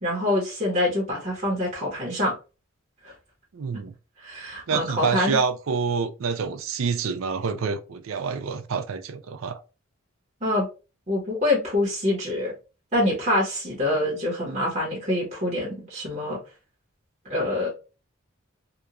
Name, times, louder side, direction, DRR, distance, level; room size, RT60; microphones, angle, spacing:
voice 1, 0.0-2.3 3.0-3.1 4.2-5.4 10.4-10.7 11.1-12.5 12.9-16.4 17.3-17.7, left 1 dB, 35° right, 1.0 m, -25 dB
voice 2, 3.5-3.9 4.7-9.6, right 5 dB, 75° right, 0.4 m, -27 dB
2.9 x 2.3 x 2.4 m
head